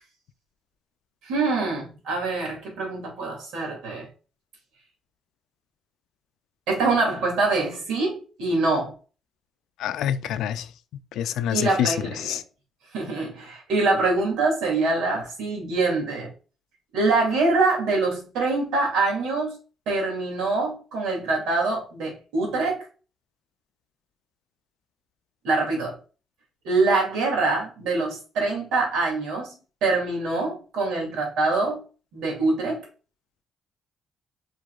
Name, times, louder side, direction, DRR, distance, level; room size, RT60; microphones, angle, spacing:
voice 1, 1.2-4.1 6.7-8.9 11.5-12.4 12.9-16.3 16.9-19.6 19.9-22.9 25.4-26.0 26.6-29.5 29.8-31.8 32.1-32.8, right 3 dB, 85° right, 2.4 m, -24 dB
voice 2, 9.8-10.7 11.1-12.4, left 10 dB, 85° left, 0.3 m, -26 dB
4.7 x 4.5 x 2.3 m
cardioid pair, 90°, 0 cm